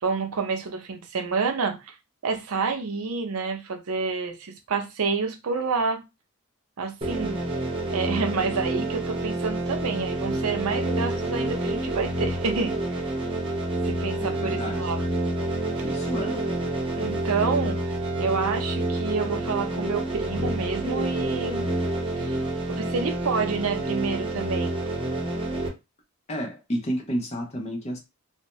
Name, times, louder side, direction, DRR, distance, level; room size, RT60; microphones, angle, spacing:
voice 1, 0.0-2.0 2.2-6.0 6.8-7.4 7.9-13.1 13.8-15.1 15.8-16.3 17.0-17.9 18.2-21.7 22.2-22.4 22.7-24.8, right 4 dB, 85° right, 0.6 m, -29 dB
Mono tron bike engine, 7.0-25.7, right 1 dB, 25° right, 0.7 m, -28 dB
voice 2, 14.2-14.9 15.8-16.4 26.3-28.0, equal, 30° left, 0.6 m, -31 dB
2.6 x 2.1 x 3.0 m
head